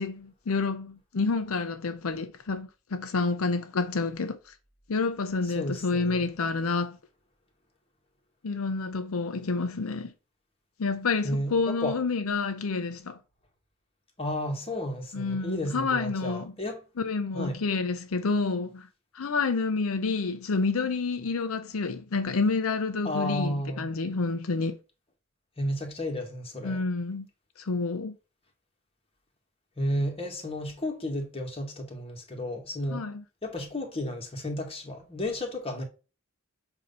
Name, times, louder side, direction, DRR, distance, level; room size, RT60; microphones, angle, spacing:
voice 1, 0.0-4.5 4.9-7.0 8.4-10.1 10.8-13.2 15.1-16.5 17.0-18.9 19.1-24.8 26.6-27.3 27.6-28.2 32.9-33.2, left 4 dB, 80° left, 0.6 m, -29 dB
voice 2, 5.5-6.2 11.2-12.0 14.2-16.8 17.3-17.6 23.0-23.9 25.6-26.8 29.8-33.1 33.4-35.8, left 1 dB, 25° left, 1.7 m, -32 dB
7.7 x 2.8 x 5.4 m
head